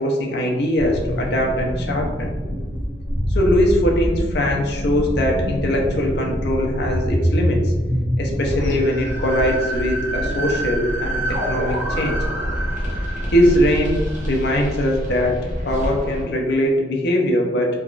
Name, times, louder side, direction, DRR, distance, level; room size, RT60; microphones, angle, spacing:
voice 1, 0.0-2.3 3.3-12.2 13.3-15.4 15.6-17.7, equal, 60° left, 0 dB, 0.6 m, -21 dB
sound 1, 0.8-16.2, equal, 45° right, 0.8 m, -25 dB
3.4 x 2.3 x 2.4 m, 1.3 s
head